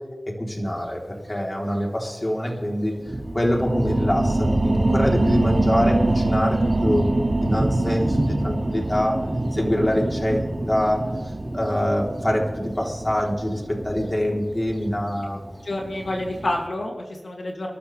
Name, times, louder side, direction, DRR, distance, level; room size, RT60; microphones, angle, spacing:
voice 1, 0.3-3.0 3.3-7.1 7.4-9.2 9.5-10.4 10.7-11.1 11.5-15.5, equal, 30° left, -1 dB, 3.7 m, -24 dB
Thunder, 0.7-0.8 1.8-1.9 2.4-2.5 2.9-16.7, right 1 dB, 30° right, 2.3 m, -32 dB
sound 1, 3.1-14.2 14.7-14.8, right 2 dB, 70° right, 3.4 m, -25 dB
voice 2, 15.6-17.8, left 1 dB, 85° left, 0 dB, 2.6 m, -28 dB
27.5 x 13.0 x 3.5 m, 1.2 s
wide cardioid pair, 60°, 0 cm